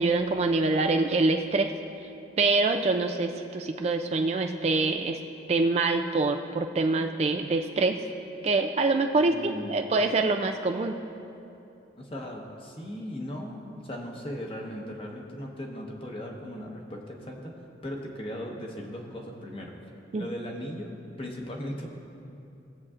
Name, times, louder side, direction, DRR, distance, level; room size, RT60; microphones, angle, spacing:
voice 1, 0.0-1.7 2.4-5.2 5.5-8.0 8.4-10.9 20.1-20.3, right 3 dB, 35° right, 5 dB, 0.3 m, -25 dB
voice 2, 9.2-9.7 12.0-17.5 17.8-19.7 20.1-21.9, equal, 30° left, 0 dB, 1.1 m, -38 dB
18.5 x 7.6 x 2.5 m, 2.8 s
head